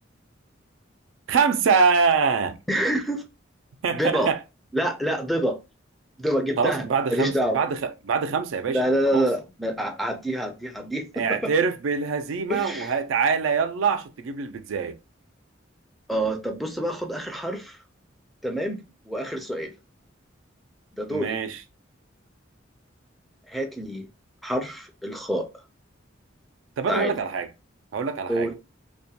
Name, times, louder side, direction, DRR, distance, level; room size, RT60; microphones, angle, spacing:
voice 1, 1.3-2.6 3.8-4.4 6.6-8.8 9.1-9.3 11.1-15.0 21.1-21.6 26.8-27.5 27.9-28.5, right 5 dB, 80° right, 0.4 m, -24 dB
voice 2, 2.7-3.2 3.9-4.3 4.7-5.6 6.2-7.6 8.7-11.5 12.5-13.0 16.1-17.8 18.4-18.8 19.1-19.7 21.0-21.4 23.5-24.1 24.4-25.5 26.9-27.2 28.3-28.5, right 1 dB, ahead, 0.4 m, -27 dB
2.3 x 2.2 x 2.7 m
head